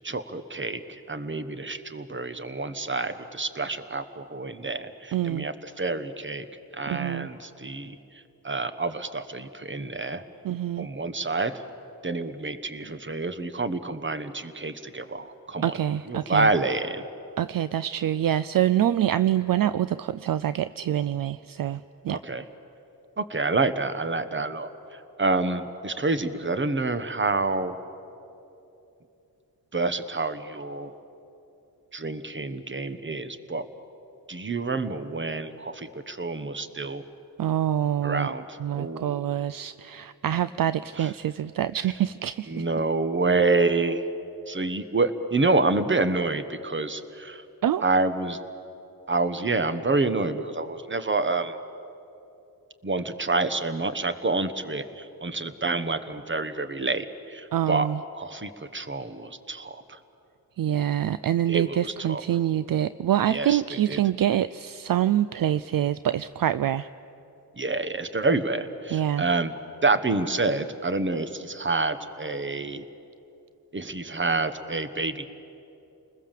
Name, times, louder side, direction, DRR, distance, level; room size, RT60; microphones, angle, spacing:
voice 1, 0.0-6.4 6.7-10.2 10.8-11.5 12.0-15.8 16.1-17.0 22.1-22.4 23.2-27.8 29.7-30.9 31.9-33.7 34.3-37.0 38.0-39.2 41.0-41.1 42.5-44.1 44.5-47.4 47.8-48.4 49.1-51.6 52.8-57.9 58.1-60.0 61.5-62.2 63.3-64.0 67.5-69.5 69.8-72.8 73.7-75.3, right 3 dB, 30° right, 10 dB, 1.2 m, -28 dB
voice 2, 5.1-5.5 6.9-7.3 10.4-10.9 15.6-16.5 17.4-22.2 37.4-38.3 38.6-42.7 47.6-47.8 57.5-58.0 60.6-66.9 68.9-69.2, right 11 dB, 65° right, 15 dB, 0.5 m, -25 dB
29.5 x 20.5 x 7.5 m, 2.9 s
wide cardioid pair, 95°, 37 cm